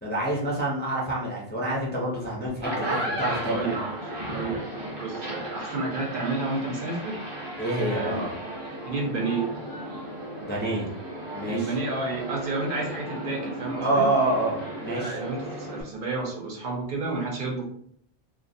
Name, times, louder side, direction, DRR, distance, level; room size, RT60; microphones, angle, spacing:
voice 1, 0.0-3.7 7.6-8.3 10.4-10.9 11.3-11.7 13.8-15.2, right 1 dB, 15° left, -5 dB, 0.4 m, -27 dB
sound 1, 2.5-15.8, right 1 dB, 30° right, 0.7 m, -35 dB
voice 2, 3.4-4.0 4.3-4.7 5.0-7.2 7.9-8.3 8.6-9.5 11.5-14.1 14.9-17.6, right 3 dB, 60° right, -1 dB, 0.8 m, -31 dB
2.5 x 2.3 x 2.6 m, 0.66 s
omnidirectional pair, 1.1 m